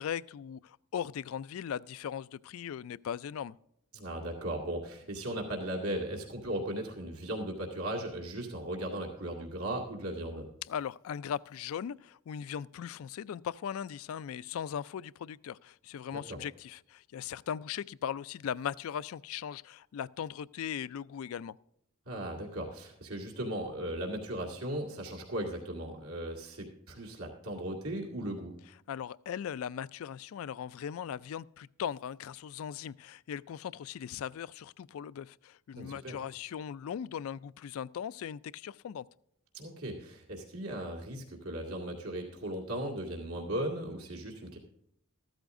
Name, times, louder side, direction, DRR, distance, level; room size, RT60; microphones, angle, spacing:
voice 1, 0.0-3.6 10.7-21.6 28.9-39.1, left 8 dB, 70° left, 0.3 m, -39 dB
voice 2, 3.9-10.5 16.1-16.4 22.1-28.5 35.8-36.2 39.5-44.6, right 1 dB, 85° right, 2.2 m, -37 dB
14.5 x 13.0 x 2.6 m
head